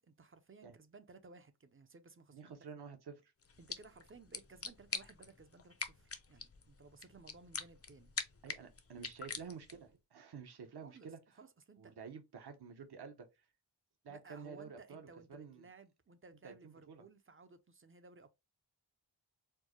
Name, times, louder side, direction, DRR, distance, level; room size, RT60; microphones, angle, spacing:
voice 1, 0.0-2.6 3.6-8.1 10.8-11.1 11.4-12.0 14.1-18.3, right 4 dB, 30° right, 0.5 m, -58 dB
voice 2, 2.3-3.3 8.4-11.2 11.8-13.3 14.0-15.7 16.4-17.0, right 6 dB, 55° right, 0.8 m, -50 dB
sound 1, 3.4-9.9, left 4 dB, 30° left, 0.5 m, -46 dB
4.5 x 2.1 x 2.9 m
wide cardioid pair, 90°, 47 cm